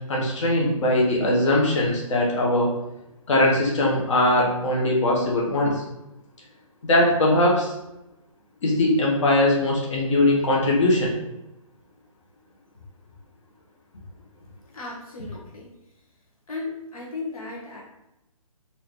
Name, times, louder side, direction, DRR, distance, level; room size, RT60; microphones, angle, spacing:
voice 1, 0.1-2.7 3.3-5.8 6.8-7.7 8.6-11.1, left 1 dB, 55° left, -3 dB, 1.1 m, -21 dB
voice 2, 14.7-15.7 16.5-17.8, left 3 dB, 80° left, -3 dB, 1.1 m, -35 dB
4.0 x 2.7 x 2.9 m, 0.91 s
figure-of-eight pair, 140°, 18 cm